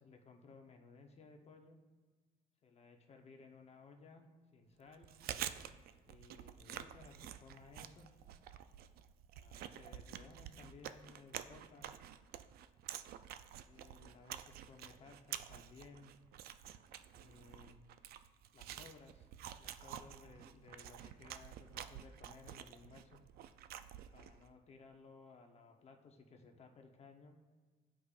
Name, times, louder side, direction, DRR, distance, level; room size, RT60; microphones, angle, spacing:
voice 1, 0.0-1.8 2.6-5.1 6.1-8.1 9.4-12.1 13.6-16.1 17.1-17.8 18.5-19.3 19.6-23.2 24.1-27.4, left 4 dB, 40° left, 4 dB, 0.9 m, -59 dB
Chewing mastication, 4.9-24.4, right 10 dB, 65° right, 0.4 m, -49 dB
13.0 x 5.0 x 2.4 m, 1.4 s
cardioid pair, 110°, 17 cm